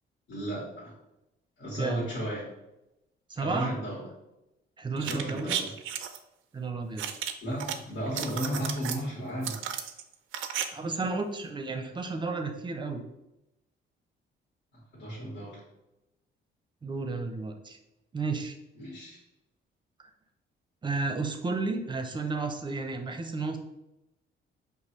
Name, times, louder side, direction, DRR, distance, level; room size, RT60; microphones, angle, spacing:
voice 1, 0.3-0.9 1.6-2.5 3.4-4.0 5.0-5.7 7.4-9.6 14.9-15.6 18.8-19.2, right 1 dB, 65° left, -7 dB, 1.5 m, -34 dB
voice 2, 3.3-3.7 4.8-5.6 6.5-7.1 10.7-13.0 16.8-17.8 18.1-18.6 20.8-23.6, right 3 dB, 25° right, 5 dB, 0.6 m, -32 dB
sound 1, 5.0-6.2 7.0-7.7 8.1-9.0 9.4-10.6 10.9-11.0, right 9 dB, 80° right, 0.4 m, -34 dB
5.3 x 2.3 x 3.1 m, 0.91 s
cardioid pair, 90°, 20 cm